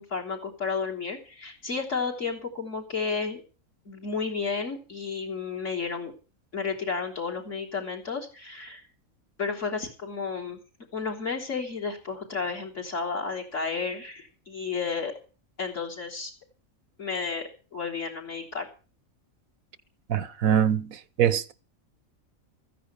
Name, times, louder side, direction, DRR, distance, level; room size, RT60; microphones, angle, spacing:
voice 1, 0.0-3.4 3.9-6.1 6.5-8.8 9.4-10.6 10.9-15.1 15.6-16.3 17.0-17.4 17.7-18.7, left 5 dB, 60° left, 3.7 m, -32 dB
voice 2, 20.1-21.5, right 9 dB, 85° right, 1.3 m, -24 dB
14.5 x 10.0 x 6.8 m
omnidirectional pair, 1.4 m